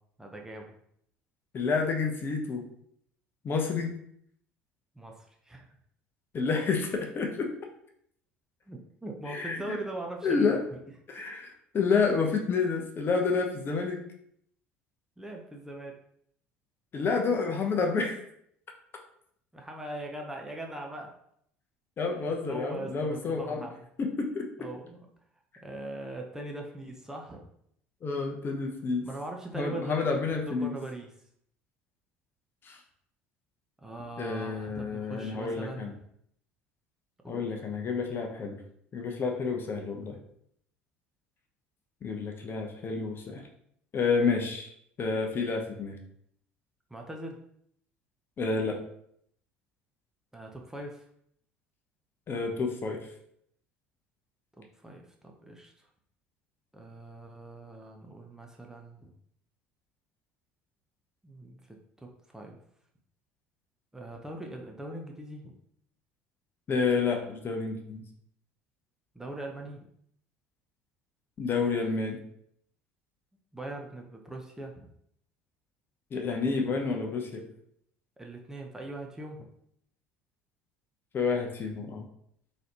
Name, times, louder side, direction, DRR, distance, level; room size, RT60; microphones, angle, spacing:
voice 1, 0.2-0.7 5.0-5.1 5.5-5.7 8.7-10.6 15.2-16.0 19.5-21.1 22.2-23.9 24.6-25.1 25.6-27.5 29.0-31.1 33.8-35.9 37.2-37.5 46.9-47.4 50.3-51.0 54.6-55.7 56.7-59.1 61.2-62.6 63.9-65.5 69.1-69.8 73.5-74.9 78.2-79.4, right 1 dB, 10° right, 1 dB, 0.6 m, -41 dB
voice 2, 1.5-2.7 3.4-3.9 6.3-7.5 9.3-9.6 10.2-10.6 11.1-14.0 16.9-18.2 22.0-23.6 24.0-24.5 28.0-29.1 29.5-30.7 32.7-32.8 34.2-35.9 37.3-38.6 38.9-40.2 42.0-43.4 43.9-44.7 45.0-46.0 48.4-48.8 52.3-53.0 66.7-68.0 71.4-72.2 76.1-77.4 81.1-82.0, left 4 dB, 35° left, 2 dB, 0.8 m, -29 dB
3.9 x 3.2 x 2.8 m, 0.70 s
figure-of-eight pair, 60°, 6 cm